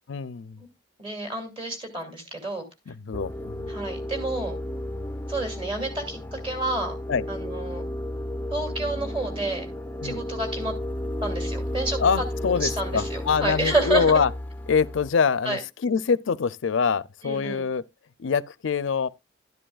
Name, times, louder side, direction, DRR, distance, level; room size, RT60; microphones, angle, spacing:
voice 1, 0.1-0.6 2.9-3.7 7.1-7.2 10.0-10.2 12.0-14.3 14.7-17.8 18.2-19.1, left 6 dB, 75° left, 0.5 m, -24 dB
voice 2, 1.0-2.6 3.7-4.6 5.3-7.0 7.3-7.8 8.5-9.7 10.0-10.7 11.2-12.0 12.4-14.3 15.4-15.6 17.2-17.6, right 2 dB, 30° right, 2.7 m, -29 dB
sound 1, 3.1-15.1, left 1 dB, 10° left, 0.5 m, -33 dB
12.0 x 10.0 x 2.4 m
head